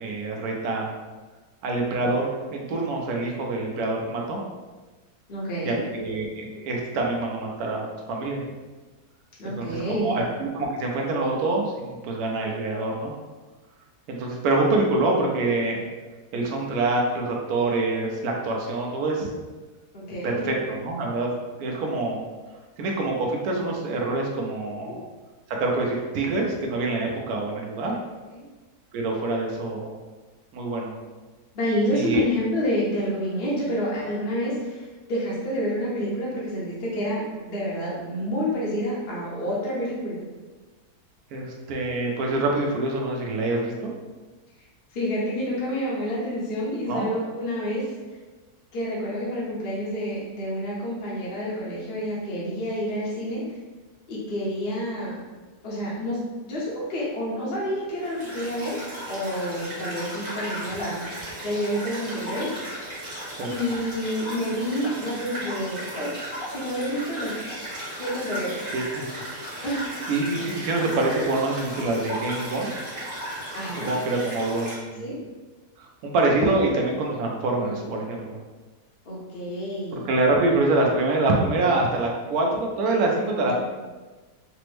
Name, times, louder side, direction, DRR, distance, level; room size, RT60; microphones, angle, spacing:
voice 1, 0.0-1.0 1.6-4.4 5.6-8.4 9.6-13.1 14.1-15.8 16.3-19.3 20.2-21.3 21.6-22.2 22.8-25.0 25.5-28.0 28.9-30.0 30.5-30.9 31.9-32.2 41.3-43.9 46.9-47.1 63.4-63.5 68.7-69.0 69.5-69.7 70.1-72.7 73.8-75.1 75.8-78.4 79.9-83.6, right 2 dB, 75° right, 0 dB, 1.1 m, -25 dB
voice 2, 5.3-5.8 9.4-10.2 19.9-20.5 28.3-28.4 31.5-40.2 44.9-47.9 48.7-53.4 54.1-55.2 55.6-58.8 59.1-61.0 61.4-62.5 63.4-67.4 68.0-68.6 69.6-69.8 73.5-73.9 75.0-75.2 77.6-77.9 79.1-80.1 83.4-83.6, equal, 50° left, -6 dB, 0.7 m, -28 dB
sound 1, 58.0-74.7, right 1 dB, 25° right, 0.7 m, -36 dB
3.3 x 2.0 x 3.1 m, 1.3 s
omnidirectional pair, 1.7 m